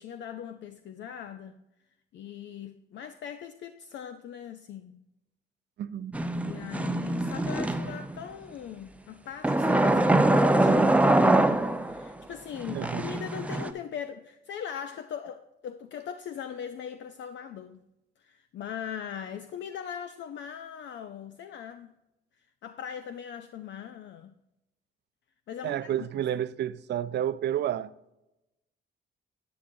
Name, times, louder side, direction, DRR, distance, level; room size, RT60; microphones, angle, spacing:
voice 1, 0.0-1.6 2.1-5.0 6.4-10.8 11.8-17.8 18.2-21.9 22.4-24.3 25.5-25.9, left 8 dB, 65° left, 0.6 m, -40 dB
voice 2, 5.8-6.2 12.7-13.1 25.6-27.9, right 11 dB, 60° right, 0.5 m, -30 dB
sound 1, 6.1-8.2 9.4-12.1 12.6-13.7, right 2 dB, 5° right, 0.6 m, -24 dB
10.0 x 9.5 x 2.7 m
cardioid pair, 90°, 20 cm